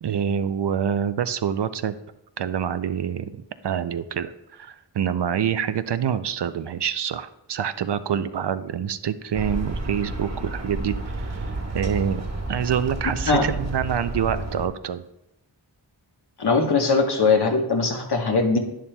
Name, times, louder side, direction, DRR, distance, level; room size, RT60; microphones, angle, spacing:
voice 1, 0.0-1.9 2.4-3.4 3.6-12.2 12.5-15.0, right 8 dB, 60° right, 12 dB, 0.5 m, -26 dB
sound 1, 9.3-14.7, right 2 dB, 35° right, 1.4 m, -31 dB
voice 2, 16.4-18.6, left 4 dB, 55° left, 3 dB, 1.2 m, -20 dB
11.0 x 10.5 x 2.3 m, 0.88 s
wide cardioid pair, 95°, 47 cm